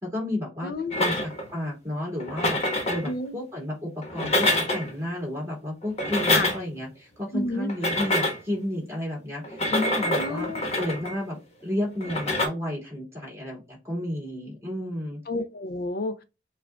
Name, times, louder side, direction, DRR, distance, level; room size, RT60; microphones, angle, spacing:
voice 1, 0.0-2.6 2.9-10.5 10.8-11.4 11.6-15.2, left 1 dB, 15° right, 2.4 m, -32 dB
voice 2, 0.6-1.1 3.1-3.3 6.3-6.5 7.3-7.7 10.2-10.6 15.3-16.2, left 2 dB, 60° left, 0.5 m, -30 dB
sound 1, 0.9-1.6 2.2-3.1 4.0-4.9 5.8-6.8 7.7-8.5 9.4-11.2 12.0-12.5, left 1 dB, 35° left, 1.1 m, -26 dB
7.1 x 2.4 x 2.3 m
head